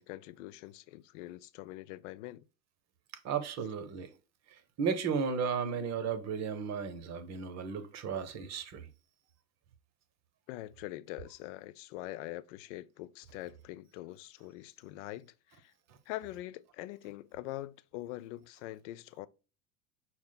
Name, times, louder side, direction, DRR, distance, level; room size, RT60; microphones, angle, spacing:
voice 1, 0.0-2.4 10.5-15.7 16.1-19.3, left 16 dB, 55° left, 0.5 m, -44 dB
voice 2, 3.2-4.1 4.8-8.9, right 6 dB, 35° right, 0.8 m, -34 dB
5.9 x 2.1 x 3.9 m
hypercardioid pair, 80°, 44 cm